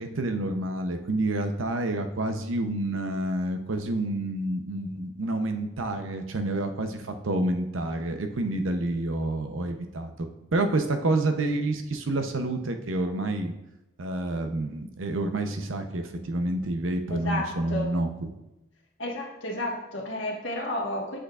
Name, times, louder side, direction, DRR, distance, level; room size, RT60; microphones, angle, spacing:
voice 1, 0.0-13.5 14.0-18.1, right 2 dB, 90° right, 6 dB, 0.7 m, -28 dB
voice 2, 17.1-17.9 19.0-21.2, left 1 dB, 75° left, -1 dB, 1.4 m, -32 dB
7.9 x 6.3 x 2.4 m, 0.95 s
head